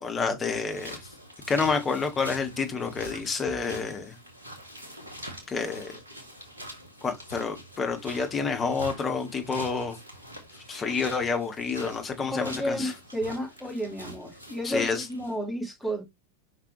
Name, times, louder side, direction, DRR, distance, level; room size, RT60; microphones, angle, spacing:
voice 1, 0.0-1.0 1.5-4.2 5.5-5.9 7.0-10.0 10.7-12.9 14.6-15.1, left 5 dB, 20° left, 1.6 m, -29 dB
sound 1, 0.5-15.4, equal, 75° right, 2.1 m, -44 dB
voice 2, 12.2-16.0, equal, ahead, 3.0 m, -32 dB
5.7 x 5.0 x 3.3 m
figure-of-eight pair, 90°, 0 cm